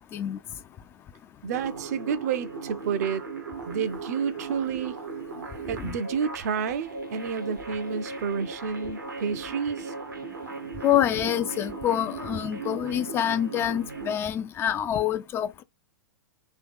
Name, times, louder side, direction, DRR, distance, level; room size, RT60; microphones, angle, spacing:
voice 1, 1.4-3.2 3.7-5.0 5.6-9.9, right 6 dB, 55° right, 0.6 m, -30 dB
sound 1, 1.5-14.1, right 4 dB, 85° right, 1.1 m, -38 dB
voice 2, 10.8-15.6, left 10 dB, 25° left, 0.3 m, -26 dB
3.7 x 2.8 x 3.5 m
figure-of-eight pair, 105°, 10 cm